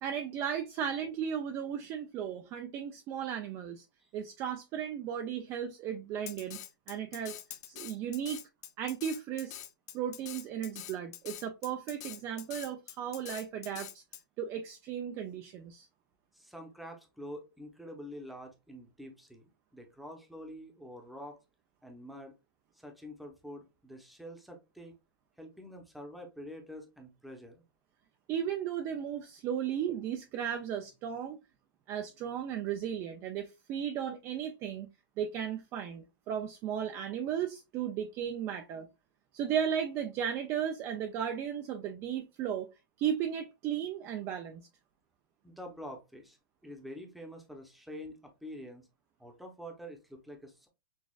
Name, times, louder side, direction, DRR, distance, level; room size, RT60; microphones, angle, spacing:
voice 1, 0.0-3.9 4.1-6.6 6.9-7.4 7.7-8.4 8.8-9.6 9.9-14.0 14.4-15.9 28.3-31.4 31.9-34.9 35.2-38.9 39.3-42.7 43.0-44.6, right 9 dB, 25° right, 0.4 m, -35 dB
Drum kit, 6.3-14.2, left 12 dB, 50° left, 0.8 m, -45 dB
voice 2, 16.3-21.4 21.8-22.3 22.7-24.9 25.4-27.6 45.4-46.4 46.6-48.9 49.2-50.7, equal, ahead, 0.7 m, -47 dB
6.2 x 2.3 x 2.3 m
supercardioid pair, 160°, 12 cm